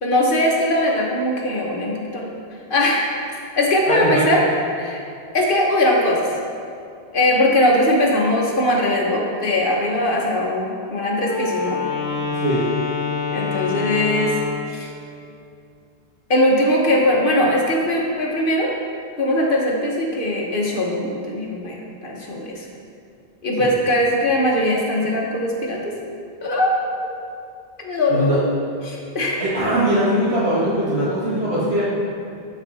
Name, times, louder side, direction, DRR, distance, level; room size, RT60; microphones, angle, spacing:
voice 1, 0.0-2.2 2.7-3.1 3.5-4.4 4.8-5.0 5.3-6.2 7.1-11.8 13.3-14.4 14.7-14.9 16.3-18.7 19.2-22.6 23.4-25.9 26.4-26.8 27.8-28.4 28.8-29.4, left 1 dB, 55° left, -1 dB, 1.3 m, -20 dB
voice 2, 3.9-4.4 12.4-12.6 23.6-23.7 28.1-28.4 29.4-31.8, right 1 dB, 75° right, -10 dB, 2.2 m, -21 dB
Wind instrument woodwind instrument, 11.2-14.8, left 5 dB, 80° left, 1.4 m, -26 dB
12.0 x 4.7 x 4.1 m, 2.5 s
omnidirectional pair, 1.1 m